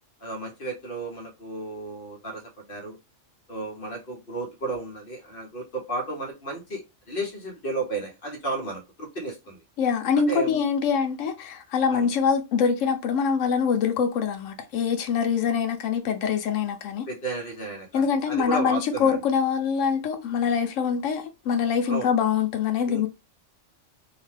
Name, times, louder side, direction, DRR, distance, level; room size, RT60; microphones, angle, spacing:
voice 1, 0.2-3.0 3.5-9.6 10.1-10.6 11.9-12.1 17.1-19.2 21.8-22.1 22.9-23.1, right 2 dB, 50° left, 1.0 m, -33 dB
voice 2, 9.8-17.1 17.9-23.1, left 6 dB, 75° left, 0.9 m, -24 dB
2.8 x 2.1 x 3.1 m
omnidirectional pair, 1.3 m